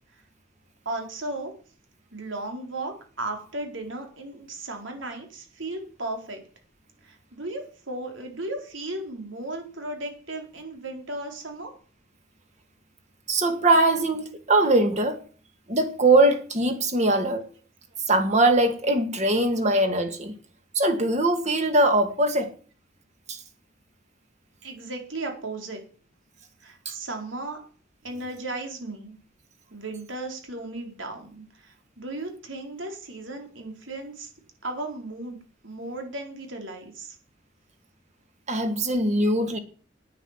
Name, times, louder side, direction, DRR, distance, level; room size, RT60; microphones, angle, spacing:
voice 1, 0.8-1.5 2.1-6.4 7.0-11.7 24.6-25.8 26.6-27.6 28.0-29.2 29.7-34.3 34.6-35.4 35.6-37.2, right 2 dB, 80° right, 4.4 m, -35 dB
voice 2, 13.3-15.2 15.7-17.4 18.1-20.3 20.7-22.5 23.3-23.4 26.9-27.0 38.5-39.6, right 2 dB, 35° right, 2.3 m, -21 dB
10.0 x 10.0 x 7.6 m
head